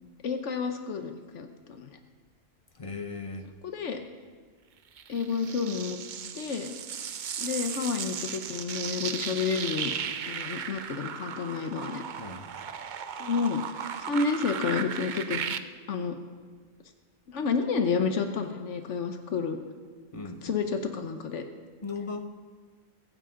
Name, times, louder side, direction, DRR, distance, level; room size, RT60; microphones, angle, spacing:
voice 1, 0.2-2.0 3.6-4.0 5.1-6.0 6.3-6.7 7.4-9.9 10.3-12.0 13.2-15.6 15.9-16.1 17.3-19.6 20.4-21.4, left 5 dB, 80° left, 6 dB, 1.2 m, -30 dB
voice 2, 2.7-3.5 12.2-12.7 20.1-20.6 21.8-22.3, left 4 dB, 30° left, 7 dB, 0.9 m, -38 dB
sound 1, 5.0-15.6, right 7 dB, 50° right, 0.6 m, -36 dB
22.5 x 10.0 x 3.8 m, 1.5 s
omnidirectional pair, 1.2 m